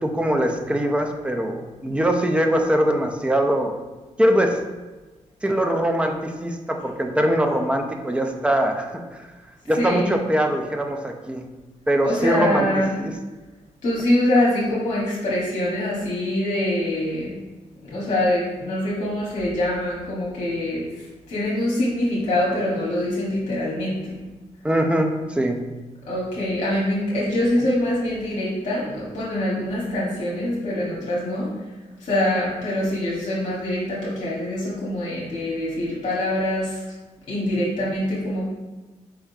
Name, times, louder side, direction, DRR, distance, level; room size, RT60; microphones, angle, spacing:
voice 1, 0.0-3.8 4.2-4.6 5.4-9.2 9.7-11.5 11.9-12.7 13.0-13.1 24.6-25.6 27.6-27.7, right 1 dB, 10° right, 4 dB, 0.4 m, -22 dB
voice 2, 9.8-10.1 12.0-12.9 13.8-17.4 17.8-24.2 26.1-31.5 32.0-36.8 37.3-38.5, left 1 dB, 60° left, -7 dB, 1.2 m, -24 dB
4.6 x 3.7 x 2.7 m, 1.2 s
cardioid pair, 120°, 13 cm